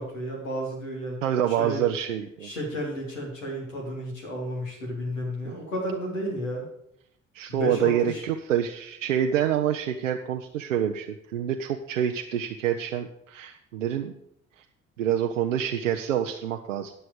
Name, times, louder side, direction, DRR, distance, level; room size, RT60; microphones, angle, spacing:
voice 1, 0.0-1.2 1.5-1.8 2.4-6.6 7.5-8.2, equal, 80° left, -2 dB, 2.7 m, -32 dB
voice 2, 1.2-2.5 5.4-5.6 7.3-14.1 15.0-16.9, right 9 dB, 85° right, 5 dB, 0.5 m, -27 dB
9.9 x 6.4 x 6.8 m, 0.76 s
figure-of-eight pair, 45°, 37 cm